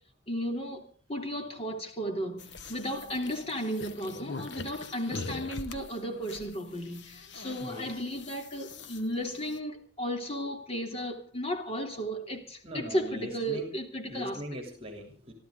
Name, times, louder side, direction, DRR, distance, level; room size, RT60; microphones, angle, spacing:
voice 1, 0.3-14.4, equal, 30° left, 3.0 m, -34 dB
sound 1, 2.4-9.6, left 3 dB, 60° left, 1.2 m, -43 dB
voice 2, 7.6-7.9 12.6-13.7 14.1-15.3, equal, 30° right, 3.2 m, -41 dB
27.0 x 13.0 x 3.8 m
head